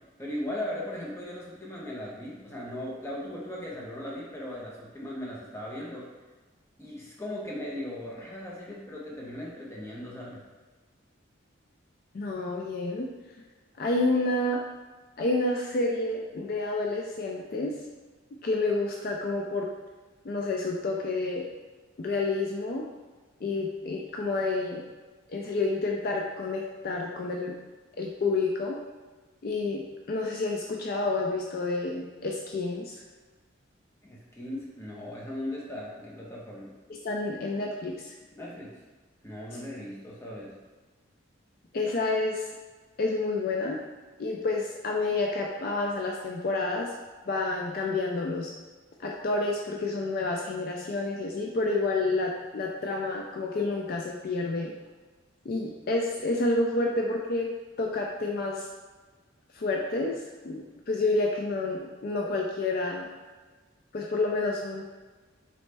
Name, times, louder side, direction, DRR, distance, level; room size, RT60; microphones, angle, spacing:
voice 1, 0.2-6.1 6.8-10.5 34.0-36.7 38.4-38.8 39.2-40.6, left 1 dB, 15° left, -4 dB, 0.7 m, -38 dB
voice 2, 12.1-13.1 13.8-14.6 15.2-17.8 18.4-19.7 20.2-21.5 22.0-22.8 23.4-24.8 25.3-27.5 28.0-28.8 29.4-33.0 37.0-38.1 41.7-42.5 43.0-43.8 44.2-46.9 47.3-48.5 49.0-54.7 55.5-57.5 57.8-58.7 59.5-63.1 63.9-64.8, left 2 dB, 45° left, -1 dB, 0.3 m, -29 dB
4.1 x 3.1 x 3.3 m, 1.3 s
head